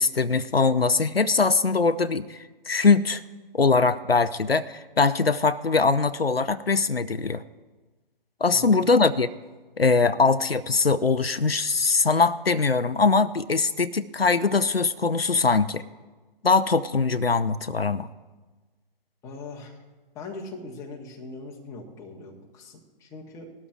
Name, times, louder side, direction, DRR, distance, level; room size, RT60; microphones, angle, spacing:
voice 1, 0.0-2.4 2.7-3.2 3.5-7.4 8.4-9.3 9.8-15.8 16.4-18.1, left 4 dB, 90° left, 12 dB, 0.6 m, -22 dB
voice 2, 8.5-8.8 10.0-10.1 19.2-19.8 20.1-23.5, left 3 dB, 10° left, -1 dB, 1.2 m, -41 dB
19.5 x 12.5 x 2.5 m, 1.3 s
figure-of-eight pair, 135°, 29 cm